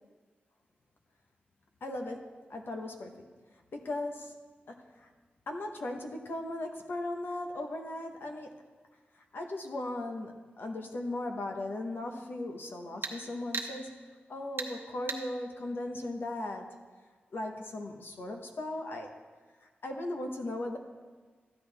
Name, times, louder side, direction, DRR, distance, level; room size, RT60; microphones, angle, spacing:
voice 1, 1.8-3.2 3.7-4.3 4.7-5.1 5.5-8.5 9.3-14.0 14.3-16.7 17.3-19.1 19.8-20.8, left 1 dB, 70° left, 3 dB, 1.1 m, -37 dB
sound 1, 8.6-8.7 13.0-13.2 13.5-13.7 14.6-14.7 15.1-15.2, right 4 dB, 70° right, 0.9 m, -35 dB
13.0 x 10.0 x 3.5 m, 1.5 s
wide cardioid pair, 165°, 4 cm